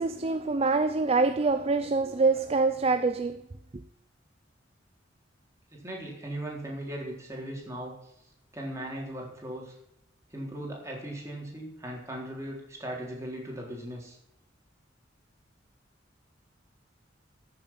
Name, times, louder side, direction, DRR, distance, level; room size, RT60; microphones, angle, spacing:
voice 1, 0.0-3.4, right 3 dB, 30° right, 0.5 m, -25 dB
voice 2, 5.7-7.9 8.5-9.7 10.3-14.2, right 1 dB, 15° right, 3.9 m, -38 dB
14.0 x 7.3 x 5.8 m
head